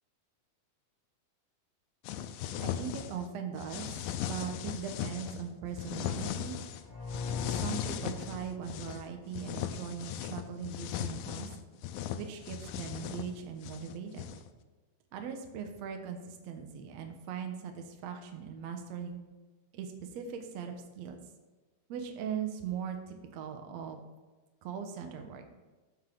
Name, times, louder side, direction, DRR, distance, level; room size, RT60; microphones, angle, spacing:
sound 1, 2.0-3.3 3.6-5.4 5.8-6.8 7.1-9.0 9.3-14.5, left 10 dB, 80° left, 2.3 m, -38 dB
voice 1, 2.6-4.0 4.2-6.6 7.6-11.5 12.1-14.3 15.1-19.2 19.7-21.2 21.9-24.0 24.6-25.5, right 7 dB, 75° right, 5 dB, 1.6 m, -40 dB
sound 2, 6.8-9.6, left 4 dB, 5° left, 1.4 m, -41 dB
15.0 x 5.6 x 3.8 m, 1.2 s
omnidirectional pair, 4.5 m